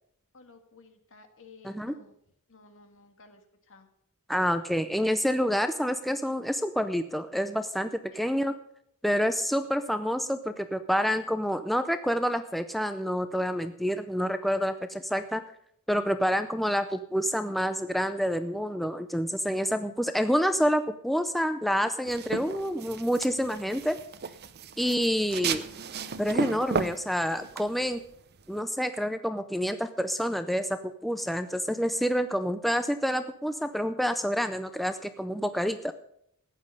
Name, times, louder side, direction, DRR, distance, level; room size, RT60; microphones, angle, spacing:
voice 1, 0.3-2.1 2.5-3.4 3.7-3.9 8.1-8.3, left 4 dB, 65° left, 6 dB, 1.8 m, -54 dB
voice 2, 1.6-1.9 4.3-8.5 9.0-15.4 15.9-24.0 24.8-25.6 26.2-28.0 28.5-35.9, equal, ahead, 9 dB, 0.5 m, -28 dB
sound 1, 22.1-28.6, right 5 dB, 45° right, 0.7 m, -34 dB
14.5 x 9.6 x 5.4 m, 0.72 s
head